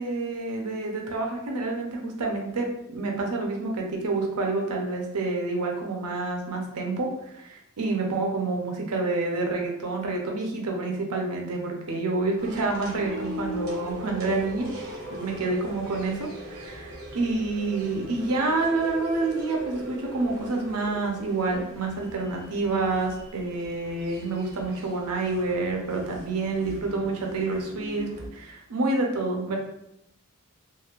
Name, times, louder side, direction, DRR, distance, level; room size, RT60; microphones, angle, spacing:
voice 1, 0.0-7.1 7.4-14.7 15.1-16.2 16.5-29.6, right 3 dB, 85° right, 1 dB, 0.7 m, -28 dB
sound 1, 12.4-28.3, right 1 dB, 45° right, 0.8 m, -40 dB
3.0 x 2.6 x 2.4 m, 0.81 s
head